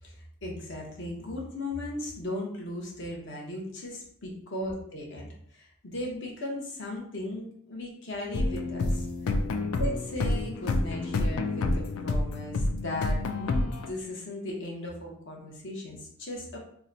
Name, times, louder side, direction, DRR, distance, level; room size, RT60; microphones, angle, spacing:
voice 1, 0.0-9.1 9.8-16.6, left 1 dB, 55° left, -1 dB, 0.9 m, -37 dB
sound 1, 8.3-13.9, left 2 dB, 90° left, 0.4 m, -28 dB
2.8 x 2.2 x 3.8 m, 0.67 s
head